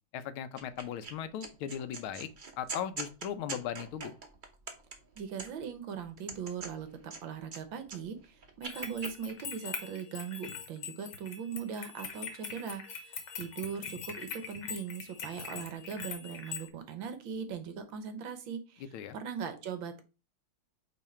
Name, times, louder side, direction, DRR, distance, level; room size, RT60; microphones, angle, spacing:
voice 1, 0.1-2.3 2.6-4.1 18.9-19.2, left 9 dB, 80° left, 1.6 m, -38 dB
sound 1, 0.6-1.1 1.4-5.7 6.2-7.6 7.9-9.1, right 4 dB, 45° right, 0.6 m, -42 dB
voice 2, 5.2-18.8 19.1-20.0, right 7 dB, 70° right, 1.6 m, -40 dB
sound 2, 8.6-16.7, left 6 dB, 60° left, 1.6 m, -43 dB
8.2 x 3.3 x 4.3 m
omnidirectional pair, 2.3 m